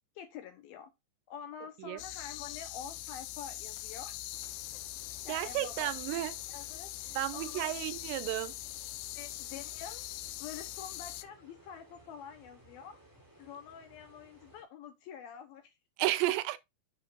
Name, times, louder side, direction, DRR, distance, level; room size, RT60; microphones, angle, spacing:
voice 1, 0.2-0.9 1.3-4.2 4.7-4.8 5.2-6.2 6.5-7.9 9.1-10.0 10.4-13.0 13.4-15.8, left 8 dB, 75° left, 2.3 m, -47 dB
sound 1, 2.0-11.3, left 16 dB, 90° left, 3.0 m, -42 dB
sound 2, 4.3-14.6, right 1 dB, 5° right, 2.1 m, -59 dB
voice 2, 5.3-6.3 7.2-8.5 16.0-16.6, right 16 dB, 80° right, 2.8 m, -32 dB
9.7 x 7.3 x 2.5 m
omnidirectional pair, 5.2 m